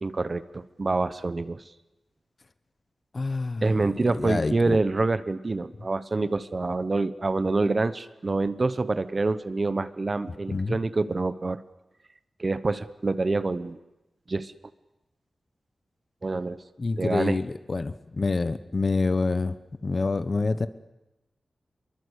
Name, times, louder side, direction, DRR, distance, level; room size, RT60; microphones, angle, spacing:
voice 1, 0.0-1.6 3.6-11.6 12.4-13.8 14.3-14.5 16.2-16.6 17.0-17.4, right 3 dB, 35° right, 14 dB, 1.0 m, -26 dB
voice 2, 3.1-4.8 10.5-10.8 16.8-19.6 19.8-20.7, left 3 dB, 35° left, 13 dB, 1.1 m, -27 dB
26.0 x 23.0 x 8.3 m, 0.97 s
wide cardioid pair, 140°, 0 cm